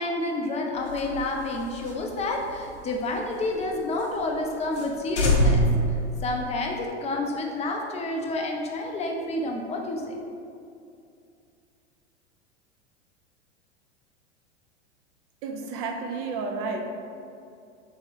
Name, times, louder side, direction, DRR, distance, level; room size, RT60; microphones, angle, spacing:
voice 1, 0.0-5.6 6.2-10.2, left 2 dB, 20° left, 1 dB, 0.6 m, -29 dB
sound 1, 0.8-3.6 4.0-4.1 4.4-4.5 4.7-4.9 5.1-6.8, equal, 80° left, 0.8 m, -26 dB
voice 2, 15.4-16.9, right 4 dB, 40° right, 3 dB, 0.6 m, -31 dB
3.6 x 3.0 x 4.8 m, 2.5 s
figure-of-eight pair, 90°, 34 cm